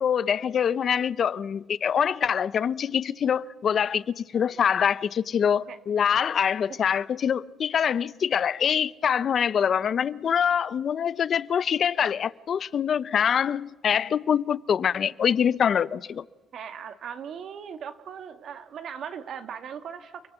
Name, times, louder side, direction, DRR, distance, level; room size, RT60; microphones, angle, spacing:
voice 1, 0.0-16.2, left 8 dB, 55° left, 0.7 m, -24 dB
voice 2, 16.5-20.2, right 7 dB, 65° right, 1.9 m, -38 dB
30.0 x 18.0 x 8.1 m
cardioid pair, 90°, 0 cm